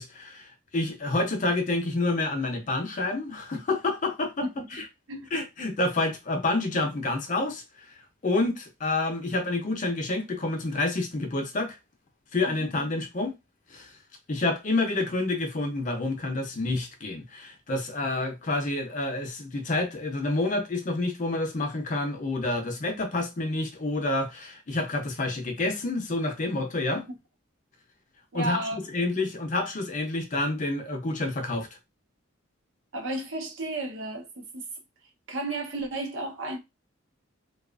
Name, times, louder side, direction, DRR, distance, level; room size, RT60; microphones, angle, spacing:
voice 1, 0.0-4.5 4.7-4.8 5.3-7.6 8.2-11.8 12.3-13.3 13.7-13.9 14.3-27.0 28.3-31.7, left 2 dB, 40° left, 0.5 m, -28 dB
voice 2, 28.3-28.8 32.9-34.6 35.3-36.6, right 2 dB, 75° right, 0.8 m, -33 dB
2.7 x 2.3 x 2.4 m
head